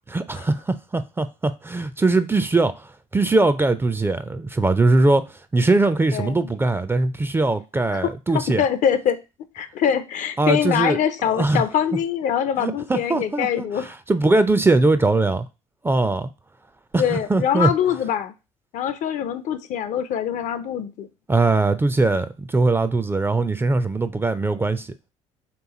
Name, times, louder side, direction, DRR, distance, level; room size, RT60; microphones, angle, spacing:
voice 1, 0.1-8.6 10.4-11.6 12.6-15.5 15.8-16.3 16.9-17.7 21.3-24.9, right 2 dB, 15° right, 0.4 m, -21 dB
voice 2, 6.1-6.5 7.9-9.2 9.6-13.9 17.0-18.3 18.7-21.1, left 9 dB, 50° left, 0.5 m, -24 dB
3.4 x 3.0 x 4.0 m
hypercardioid pair, 60°, 16 cm